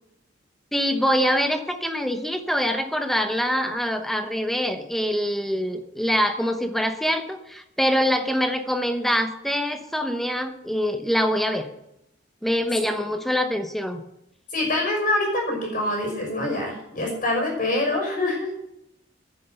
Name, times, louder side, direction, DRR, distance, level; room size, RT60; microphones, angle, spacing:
voice 1, 0.7-11.7 12.4-14.0, equal, ahead, 7 dB, 1.0 m, -24 dB
voice 2, 14.5-18.5, left 2 dB, 45° left, 1 dB, 5.9 m, -25 dB
10.5 x 10.0 x 6.8 m, 0.82 s
head